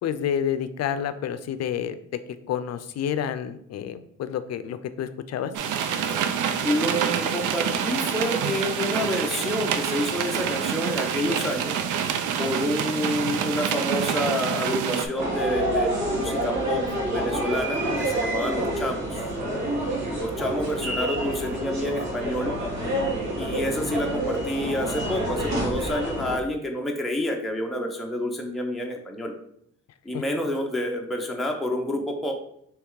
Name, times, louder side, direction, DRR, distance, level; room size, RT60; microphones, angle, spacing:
voice 1, 0.0-2.0 2.5-5.5 30.1-30.2, left 9 dB, 60° left, 12 dB, 0.5 m, -29 dB
sound 1, 5.5-15.1, right 8 dB, 80° right, 0.5 m, -27 dB
voice 2, 6.3-11.8 12.4-19.3 20.1-22.5 23.4-29.3 30.0-32.4, left 1 dB, ahead, 1 dB, 0.6 m, -28 dB
sound 2, 15.2-26.4, right 1 dB, 65° right, 1.7 m, -28 dB
3.4 x 3.2 x 4.7 m, 0.72 s
cardioid pair, 90°, 30 cm